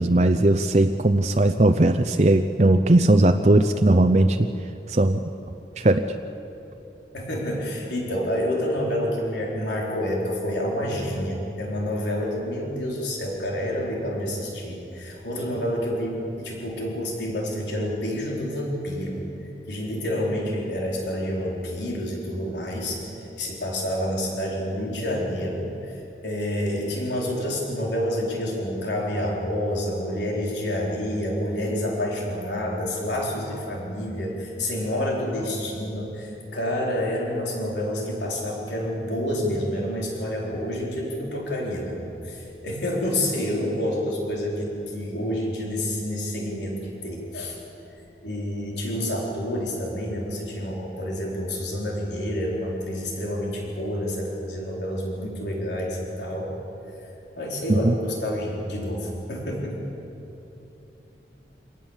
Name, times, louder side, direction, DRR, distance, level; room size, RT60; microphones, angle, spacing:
voice 1, 0.0-4.5 4.9-5.2 5.8-6.0 57.7-57.9, right 2 dB, 40° right, 7 dB, 0.6 m, -18 dB
voice 2, 7.1-19.2 19.7-47.6 48.2-56.5 57.4-59.8, left 1 dB, 90° left, -2 dB, 4.3 m, -28 dB
26.5 x 18.5 x 7.3 m, 2.9 s
head